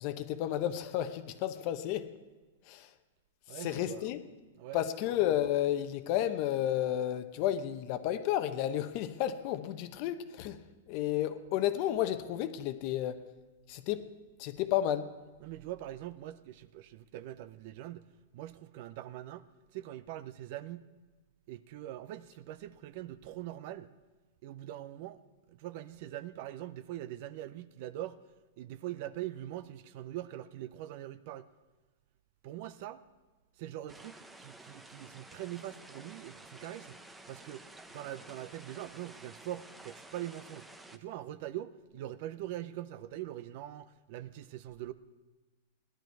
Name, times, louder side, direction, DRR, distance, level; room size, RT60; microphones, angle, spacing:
voice 1, 0.0-2.1 2.7-2.9 3.5-4.2 4.7-10.6 10.9-13.2 13.7-14.1 14.4-15.1, left 12 dB, 40° left, 0.8 m, -32 dB
voice 2, 3.5-4.1 4.6-4.8 15.4-18.1 18.3-19.5 19.7-20.9 21.5-23.9 24.4-25.2 25.5-28.2 28.6-31.5 32.4-33.0 33.6-37.0 37.3-40.7 40.9-44.9, right 13 dB, 45° right, 0.6 m, -42 dB
sound 1, 33.9-41.0, right 2 dB, 5° right, 0.7 m, -52 dB
17.0 x 11.5 x 4.6 m
hypercardioid pair, 155°, 0 cm